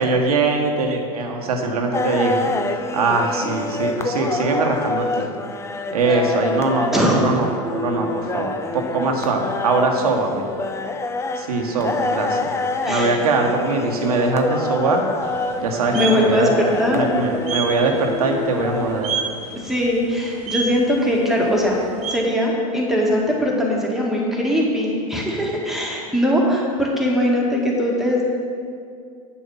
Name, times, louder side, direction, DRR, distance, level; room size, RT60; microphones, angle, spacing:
voice 1, 0.0-5.3 5.9-10.4 11.4-12.5 12.9-15.1 15.6-16.5 16.9-19.1, right 3 dB, 85° right, 2 dB, 1.3 m, -22 dB
sound 1, 1.9-19.0, left 3 dB, 15° left, 0.5 m, -27 dB
sound 2, 15.2-22.2, right 5 dB, 35° right, 1.2 m, -32 dB
voice 2, 15.9-17.0 19.6-21.8 22.1-28.3, equal, ahead, -3 dB, 1.9 m, -20 dB
8.4 x 7.1 x 5.6 m, 2.3 s
hypercardioid pair, 100°, 19 cm